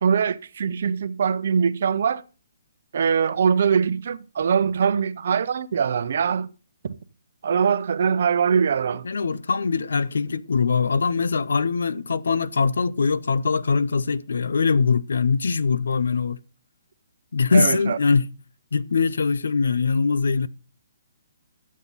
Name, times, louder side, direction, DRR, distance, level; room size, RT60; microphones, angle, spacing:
voice 1, 0.0-2.2 2.9-6.5 6.8-6.9 7.4-9.0 17.5-18.0, right 6 dB, 60° right, 0.7 m, -22 dB
voice 2, 9.0-16.4 17.3-18.3 18.7-20.5, left 5 dB, 80° left, 0.5 m, -22 dB
11.5 x 7.4 x 4.1 m
hypercardioid pair, 155°, 0 cm